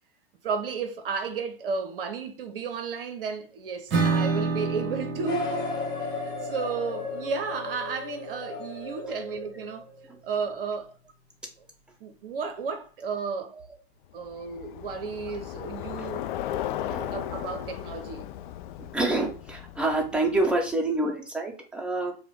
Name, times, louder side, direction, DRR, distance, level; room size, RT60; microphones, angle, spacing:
voice 1, 0.4-5.5 6.0-9.9 10.2-10.9 11.6-11.7 12.0-13.5 14.1-16.3 17.1-18.3, right 5 dB, 60° right, 0.7 m, -33 dB
Acoustic guitar / Strum, 3.9-9.3, right 4 dB, 40° right, 1.2 m, -31 dB
sound 1, 5.2-10.0, left 3 dB, 15° left, 1.4 m, -34 dB
Bicycle, 14.2-20.7, left 12 dB, 50° left, 0.4 m, -36 dB
voice 2, 16.8-17.2 18.9-22.2, right 2 dB, 5° right, 0.9 m, -27 dB
4.8 x 2.1 x 4.7 m
figure-of-eight pair, 90°, 32 cm